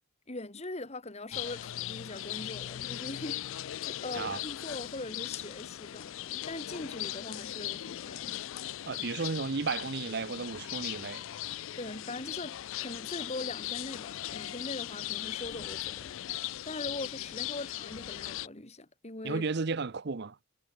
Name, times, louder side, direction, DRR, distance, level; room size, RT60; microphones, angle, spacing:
voice 1, 0.3-8.4 11.8-16.1 16.6-19.4, left 2 dB, 30° left, 2.1 m, -41 dB
sound 1, 1.3-18.5, left 13 dB, 65° left, 0.4 m, -39 dB
voice 2, 8.9-11.2 19.2-20.4, right 4 dB, 50° right, 0.7 m, -33 dB
head